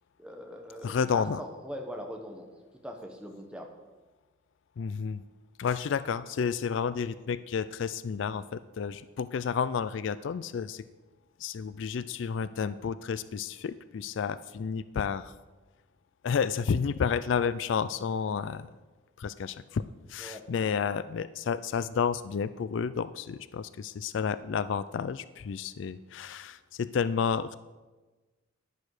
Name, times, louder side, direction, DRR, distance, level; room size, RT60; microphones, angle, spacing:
voice 1, 0.2-2.5 2.8-3.7 20.2-20.8, equal, 5° right, 2 dB, 1.2 m, -41 dB
voice 2, 0.8-1.4 4.8-5.2 5.6-10.8 11.4-15.3 16.2-18.7 19.2-27.6, left 6 dB, 65° left, 15 dB, 0.4 m, -31 dB
10.5 x 10.5 x 4.9 m, 1.2 s
head